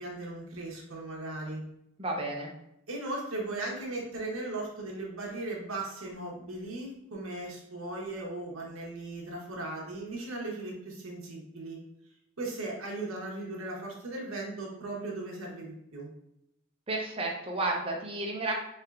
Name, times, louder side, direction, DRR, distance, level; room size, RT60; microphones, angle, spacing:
voice 1, 0.0-1.6 2.9-11.8 12.4-16.1, right 2 dB, 75° right, -2 dB, 0.9 m, -37 dB
voice 2, 2.0-2.5 16.9-18.5, right 2 dB, 25° right, 0 dB, 0.6 m, -32 dB
3.4 x 3.3 x 2.4 m, 0.80 s
head